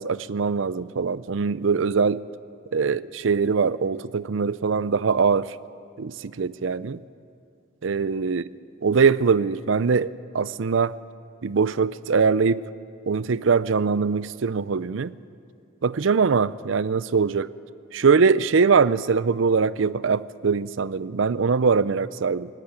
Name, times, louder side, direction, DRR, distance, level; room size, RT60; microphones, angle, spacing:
voice 1, 0.0-2.2 2.7-5.6 6.0-7.0 7.8-8.4 8.8-11.0 11.4-12.6 13.1-15.1 15.8-17.5 17.9-22.5, right 5 dB, 70° right, 18 dB, 0.5 m, -22 dB
17.5 x 17.5 x 9.7 m, 2.5 s
head